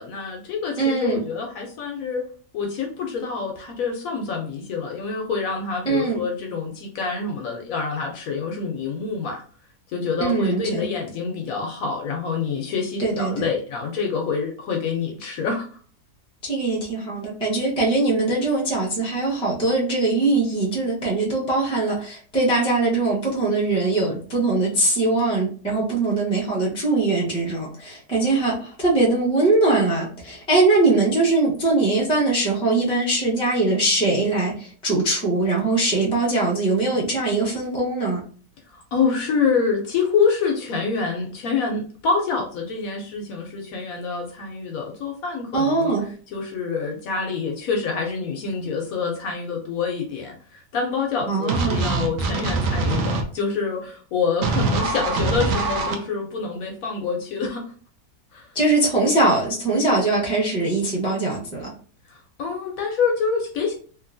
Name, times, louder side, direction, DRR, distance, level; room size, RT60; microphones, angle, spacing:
voice 1, 0.0-2.2 2.5-9.4 9.9-15.7 38.7-45.9 46.3-57.6 58.3-58.5 62.1-63.8, left 5 dB, 70° left, 2 dB, 0.9 m, -26 dB
voice 2, 0.8-1.2 5.9-6.2 10.2-10.9 13.0-13.4 16.4-38.2 45.5-46.0 51.3-51.8 58.5-61.7, right 2 dB, 5° left, -3 dB, 0.5 m, -21 dB
sound 1, 51.5-53.2 54.4-55.9, right 3 dB, 65° right, 0.9 m, -23 dB
2.9 x 2.6 x 2.5 m, 0.43 s
omnidirectional pair, 1.7 m